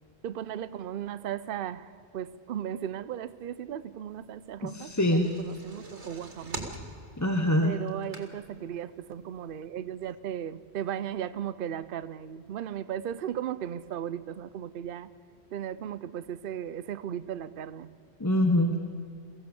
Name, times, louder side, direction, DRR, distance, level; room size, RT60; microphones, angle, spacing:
voice 1, 0.2-1.9 2.1-6.7 7.6-15.1 15.5-17.9, right 10 dB, 60° right, 15 dB, 0.8 m, -36 dB
voice 2, 4.6-5.3 7.2-7.8 18.2-18.8, left 1 dB, 15° left, 4 dB, 1.1 m, -24 dB
sound 1, 4.7-8.7 9.1-9.2 9.5-9.6, right 2 dB, 85° right, 2.6 m, -42 dB
22.5 x 16.0 x 7.0 m, 2.5 s
omnidirectional pair, 1.1 m